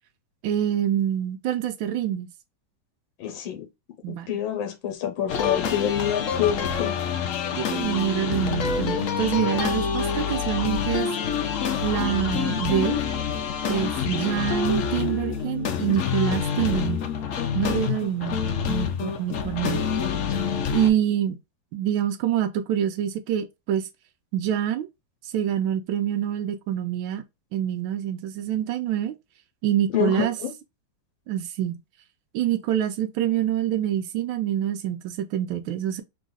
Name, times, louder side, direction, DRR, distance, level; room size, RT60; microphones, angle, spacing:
voice 1, 0.4-2.3 4.0-4.3 7.5-11.1 11.8-13.0 13.7-17.0 17.5-18.4 18.7-19.8 20.7-21.4 21.7-23.9 24.3-24.9 25.2-27.2 27.5-29.1 29.6-30.4 31.3-31.8 32.3-36.0, right 10 dB, 85° right, 1.4 m, -26 dB
voice 2, 3.2-3.7 4.1-6.9 29.9-30.5, left 9 dB, 80° left, 1.7 m, -27 dB
sound 1, 5.3-20.9, left 7 dB, 65° left, 0.8 m, -27 dB
3.9 x 2.5 x 3.8 m
omnidirectional pair, 2.1 m